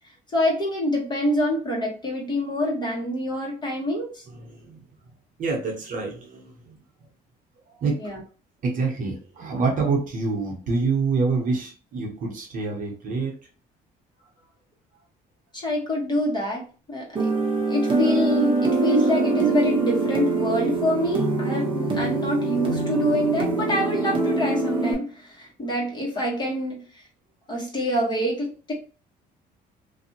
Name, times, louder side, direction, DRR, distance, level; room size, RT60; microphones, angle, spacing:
voice 1, 0.3-4.3 8.0-8.2 15.5-16.6 16.9-17.3 17.7-27.0 27.5-28.7, left 1 dB, 25° left, -2 dB, 1.2 m, -26 dB
voice 2, 4.3-5.1 5.4-6.7 7.8-8.0 8.6-13.4, right 4 dB, 50° right, 0 dB, 1.0 m, -27 dB
sound 1, 17.1-24.9, right 3 dB, 30° right, 1.0 m, -24 dB
2.6 x 2.4 x 2.8 m, 0.36 s
cardioid pair, 110°, 17 cm